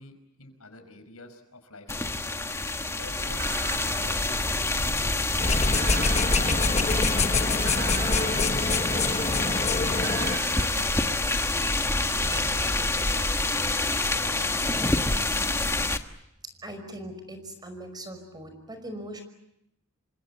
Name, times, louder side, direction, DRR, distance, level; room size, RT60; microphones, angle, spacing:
voice 1, 0.0-2.2 2.9-4.8 5.3-7.0 7.3-9.1 9.7-11.9 12.3-16.1, left 2 dB, 90° left, 8 dB, 5.3 m, -48 dB
sound 1, 1.9-16.0, left 2 dB, 15° left, 1.3 m, -27 dB
sound 2, 3.4-5.1 5.7-9.4 10.0-13.8, right 8 dB, 55° right, 2.0 m, -42 dB
sound 3, 5.4-10.4, left 3 dB, 30° left, 1.2 m, -26 dB
voice 2, 16.6-19.2, right 1 dB, 20° right, 8 dB, 5.5 m, -40 dB
28.0 x 25.0 x 8.3 m, 0.81 s
head